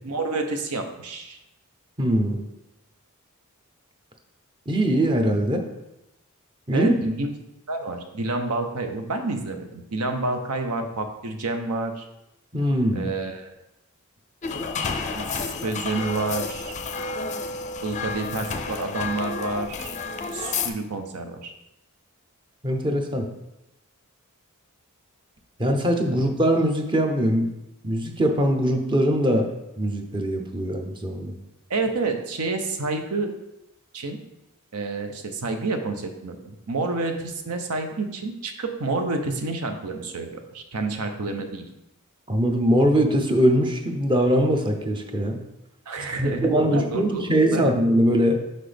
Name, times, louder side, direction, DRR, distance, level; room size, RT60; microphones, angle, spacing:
voice 1, 0.0-1.4 6.7-7.3 7.7-12.0 12.9-13.5 15.1-16.7 17.8-19.9 20.3-21.5 26.1-26.2 31.7-33.3 33.9-34.2 34.7-41.7 45.9-47.7, right 3 dB, 80° right, 6 dB, 0.8 m, -29 dB
voice 2, 2.0-2.4 4.7-5.6 6.7-6.9 12.5-13.1 22.6-23.3 25.6-27.5 27.8-29.5 29.8-31.3 42.3-45.4 46.2-48.3, equal, 20° right, 4 dB, 0.7 m, -22 dB
sound 1, 14.4-20.7, left 4 dB, 35° left, 0.4 m, -30 dB
6.0 x 5.3 x 3.4 m, 0.92 s
head